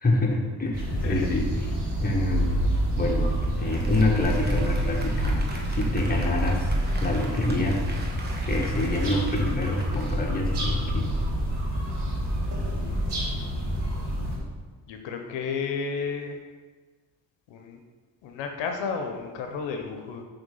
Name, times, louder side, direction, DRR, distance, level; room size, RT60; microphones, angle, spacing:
voice 1, 0.0-1.5 2.0-2.6 3.0-3.3 3.6-6.7 7.0-7.8 8.5-11.1, left 2 dB, 20° left, -1 dB, 1.4 m, -26 dB
sound 1, 0.7-14.4, equal, 70° right, 1.9 m, -27 dB
voice 2, 0.9-1.3 12.5-13.8 14.9-16.4 17.5-17.8 18.2-20.2, left 5 dB, 85° left, 4 dB, 0.7 m, -33 dB
Applause, 3.4-11.0, right 2 dB, 20° right, 1.2 m, -42 dB
5.9 x 3.5 x 5.3 m, 1.4 s
cardioid pair, 65°, 43 cm